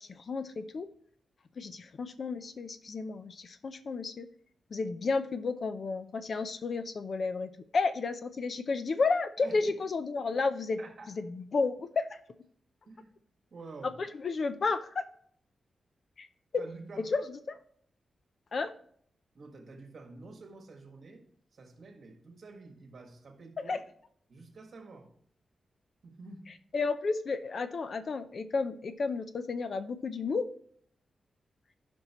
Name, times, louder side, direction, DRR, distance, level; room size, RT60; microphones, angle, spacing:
voice 1, 0.1-0.9 1.6-4.3 4.7-10.8 11.1-12.2 13.8-15.0 16.2-16.3 16.5-16.6 17.1-17.6 18.5-18.7 23.6-23.8 26.7-30.5, left 4 dB, 45° left, 0.5 m, -32 dB
voice 2, 10.8-11.1 12.9-13.2 13.5-14.0 16.6-17.1 19.3-21.2 21.5-23.7 24.3-25.1 26.0-26.5, right 3 dB, 45° right, 1.6 m, -48 dB
15.0 x 5.3 x 3.0 m
wide cardioid pair, 175°, 0 cm